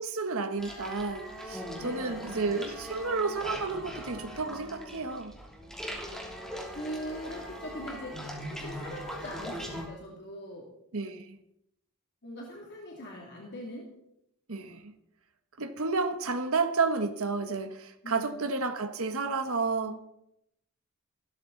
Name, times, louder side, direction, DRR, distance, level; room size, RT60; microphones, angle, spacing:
voice 1, 0.0-5.3 10.9-11.3 14.5-14.9 15.6-20.0, right 4 dB, 70° right, 1.4 m, -31 dB
sound 1, 0.6-9.9, equal, ahead, 3.0 m, -40 dB
voice 2, 1.8-2.7 6.7-8.2 8.5-10.7 12.2-13.9 18.0-18.5, equal, 50° left, 2.7 m, -41 dB
15.5 x 13.0 x 4.1 m
head